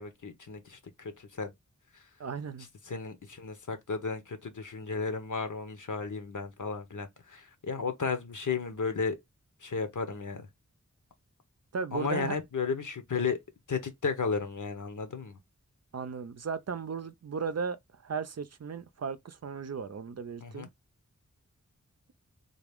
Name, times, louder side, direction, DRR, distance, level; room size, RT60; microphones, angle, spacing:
voice 1, 0.0-1.5 1.9-2.1 2.8-9.2 9.6-10.5 11.9-13.4 13.7-15.4 20.4-20.7, left 5 dB, 75° left, 1.0 m, -34 dB
voice 2, 2.2-2.7 11.7-12.4 15.9-20.7, right 5 dB, 55° right, 0.5 m, -36 dB
3.8 x 2.5 x 3.5 m
wide cardioid pair, 75°, 31 cm